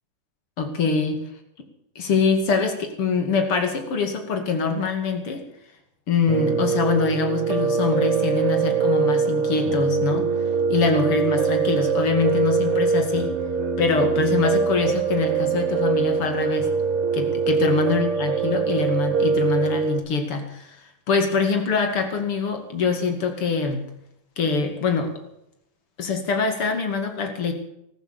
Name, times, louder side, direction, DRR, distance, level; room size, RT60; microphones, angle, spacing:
voice 1, 0.6-1.2 2.0-5.4 6.1-10.3 10.7-13.3 13.8-16.7 17.1-20.8 21.1-23.8 24.4-25.1 26.0-27.5, left 4 dB, 80° left, 6 dB, 3.4 m, -24 dB
Piano, 6.3-20.0, right 5 dB, 80° right, 2.3 m, -23 dB
14.5 x 13.5 x 6.9 m, 0.78 s
omnidirectional pair, 2.4 m